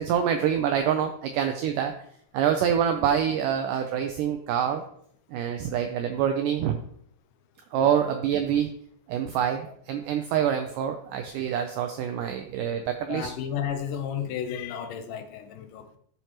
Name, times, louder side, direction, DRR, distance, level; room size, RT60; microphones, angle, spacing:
voice 1, 0.0-1.9 2.3-4.8 5.3-6.8 7.7-8.7 9.1-13.3, right 9 dB, 90° right, 6 dB, 1.8 m, -26 dB
voice 2, 13.1-16.0, left 8 dB, 75° left, 7 dB, 2.1 m, -33 dB
13.5 x 4.5 x 3.0 m, 0.63 s
omnidirectional pair, 4.4 m